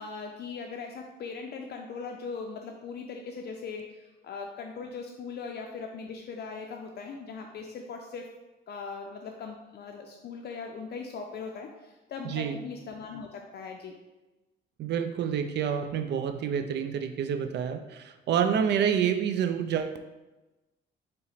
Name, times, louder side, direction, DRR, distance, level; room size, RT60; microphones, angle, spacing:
voice 1, 0.0-8.3 8.7-14.0, left 5 dB, 55° left, 2 dB, 0.4 m, -40 dB
voice 2, 12.2-12.6 14.8-20.0, right 8 dB, 60° right, 9 dB, 0.4 m, -28 dB
4.1 x 2.1 x 3.9 m, 1.1 s
cardioid pair, 90°, 20 cm